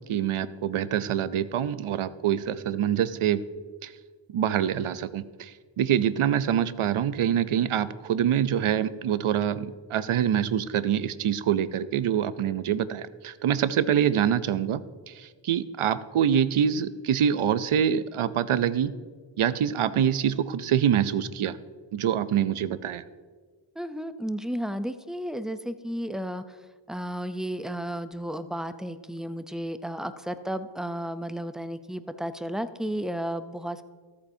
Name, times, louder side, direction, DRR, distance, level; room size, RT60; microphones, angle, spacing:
voice 1, 0.1-3.4 3.8-3.9 4.3-5.5 5.8-14.8 15.1-18.9 19.4-21.6 21.9-23.0, right 9 dB, 75° right, 15 dB, 0.6 m, -25 dB
voice 2, 23.8-26.6 26.9-33.8, equal, ahead, 11 dB, 0.4 m, -33 dB
14.0 x 8.4 x 2.7 m, 1.5 s
wide cardioid pair, 45°, 50 cm